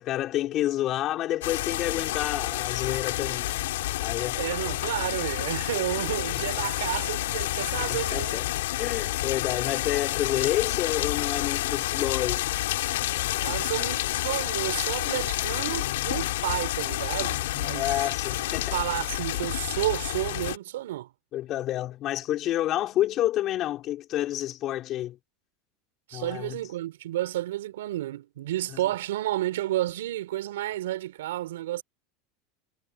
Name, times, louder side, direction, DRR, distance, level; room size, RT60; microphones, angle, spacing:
voice 1, 0.0-3.6 4.0-4.4 6.3-6.5 7.9-8.5 8.8-12.4 15.0-15.2 17.7-18.8 21.3-25.2 26.1-26.6 28.7-28.8, left 13 dB, 45° left, 4.8 m, -29 dB
sound 1, 1.4-20.6, left 16 dB, 85° left, 4.6 m, -29 dB
voice 2, 4.4-8.4 13.4-18.0 18.5-21.1 26.1-31.8, right 14 dB, 90° right, 4.6 m, -31 dB
supercardioid pair, 115°, 0 cm